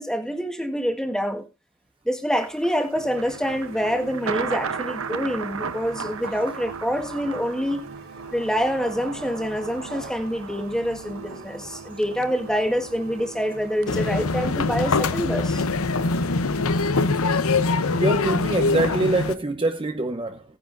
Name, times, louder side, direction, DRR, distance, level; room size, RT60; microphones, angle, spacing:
voice 1, 0.0-1.4 2.0-7.8 8.3-15.6, equal, 5° left, 1.4 m, -26 dB
Thunder, 2.3-14.6, right 5 dB, 75° right, 0.9 m, -36 dB
sound 1, 2.9-19.2, right 3 dB, 55° right, 3.0 m, -43 dB
sound 2, 13.9-19.3, left 3 dB, 80° left, 0.8 m, -23 dB
voice 2, 17.8-20.4, right 2 dB, 25° right, 0.8 m, -25 dB
17.0 x 9.9 x 2.6 m
head